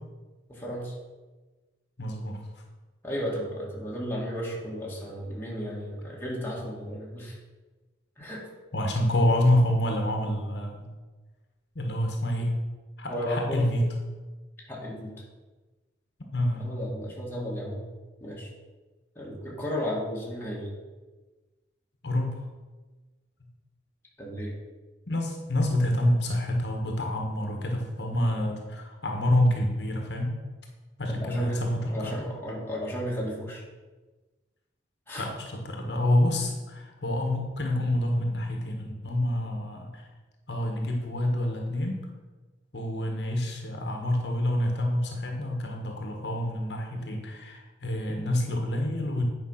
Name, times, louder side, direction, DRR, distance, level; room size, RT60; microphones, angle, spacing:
voice 1, 0.5-0.9 3.0-7.4 8.2-8.4 13.1-13.7 14.7-15.1 16.5-17.8 18.2-18.5 19.2-20.7 24.2-24.6 31.1-31.6 31.9-33.6 35.1-35.3 48.1-48.2, equal, 10° left, -5 dB, 2.0 m, -34 dB
voice 2, 2.0-2.4 8.7-10.9 11.7-12.5 13.0-13.8 16.3-16.7 22.0-22.4 25.1-30.3 31.0-32.3 35.2-40.0 40.5-42.0 42.7-49.2, left 1 dB, 65° left, 2 dB, 1.3 m, -27 dB
9.1 x 5.2 x 5.6 m, 1.2 s
head